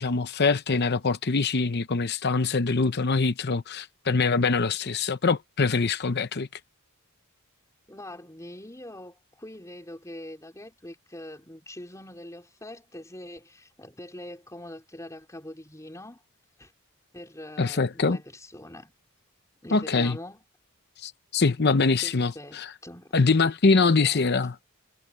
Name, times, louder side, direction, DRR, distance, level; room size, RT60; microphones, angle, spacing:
voice 1, 0.0-6.5 17.6-18.2 19.7-20.2 21.0-22.7 23.1-24.5, left 4 dB, 50° left, 0.8 m, -24 dB
voice 2, 7.9-16.2 16.6-16.7 17.1-18.9 19.6-20.4 22.0-23.2 23.7-24.2, left 1 dB, 15° left, 3.8 m, -43 dB
head